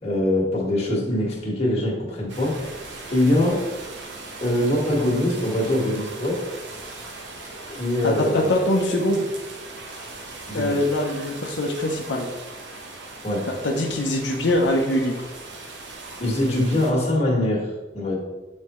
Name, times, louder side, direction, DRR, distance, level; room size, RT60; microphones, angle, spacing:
voice 1, 0.0-2.8 3.1-3.6 4.4-6.4 7.7-8.5 10.5-10.8 13.2-13.5 16.2-17.7 17.9-18.2, left 1 dB, 35° left, -4 dB, 1.7 m, -23 dB
sound 1, 2.3-16.9, right 2 dB, 85° right, 1.1 m, -39 dB
voice 2, 8.0-9.2 10.5-12.3 13.5-15.2, left 1 dB, 85° left, 0 dB, 0.8 m, -23 dB
8.6 x 4.2 x 3.1 m, 1.2 s
head